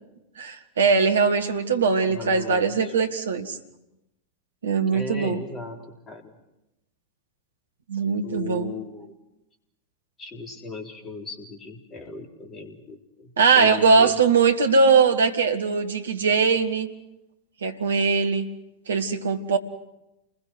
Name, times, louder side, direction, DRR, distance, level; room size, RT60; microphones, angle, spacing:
voice 1, 0.4-3.6 4.6-5.4 7.9-8.7 13.4-16.9 17.6-18.5 18.9-19.6, right 5 dB, 70° right, 7 dB, 1.9 m, -21 dB
voice 2, 2.1-2.9 4.9-6.3 8.2-9.2 10.2-14.1, left 3 dB, 20° left, 3 dB, 3.9 m, -37 dB
29.0 x 21.0 x 6.3 m, 0.92 s
figure-of-eight pair, 90°, 0 cm